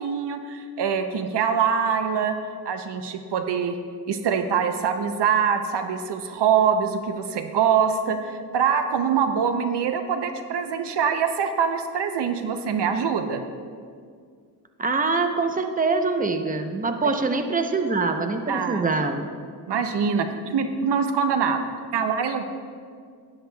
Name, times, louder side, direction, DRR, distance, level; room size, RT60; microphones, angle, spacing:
voice 1, 0.0-2.4 2.6-3.8 4.1-13.4 17.0-17.1 18.5-18.9 19.7-22.4, right 7 dB, 80° right, 7 dB, 0.7 m, -24 dB
voice 2, 14.8-19.2, right 3 dB, 20° right, 6 dB, 0.7 m, -24 dB
13.0 x 9.9 x 2.3 m, 2.1 s
cardioid pair, 70°, 41 cm